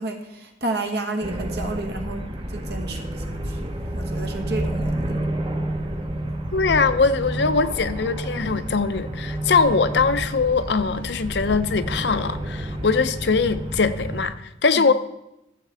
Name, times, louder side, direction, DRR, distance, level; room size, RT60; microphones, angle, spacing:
voice 1, 0.0-5.2 14.7-14.9, right 2 dB, 60° right, 1.4 m, -31 dB
sound 1, 1.2-14.3, right 1 dB, 25° right, 0.8 m, -29 dB
voice 2, 6.5-14.9, left 4 dB, 70° left, 0.6 m, -21 dB
15.0 x 7.5 x 3.4 m
head